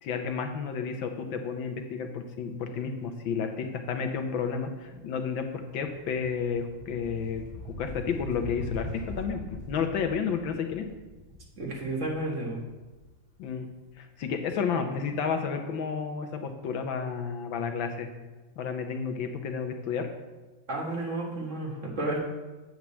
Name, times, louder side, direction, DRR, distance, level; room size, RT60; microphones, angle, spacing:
voice 1, 0.0-5.5 5.7-9.4 9.7-10.9 13.4-13.7 14.0-18.1 18.6-20.1, left 6 dB, 80° left, 5 dB, 1.7 m, -31 dB
sound 1, 4.9-13.7, left 1 dB, 10° right, 2.8 m, -42 dB
voice 2, 11.6-12.6 20.7-22.2, right 2 dB, 40° right, -2 dB, 1.8 m, -32 dB
8.3 x 4.7 x 7.4 m, 1.2 s
omnidirectional pair, 2.1 m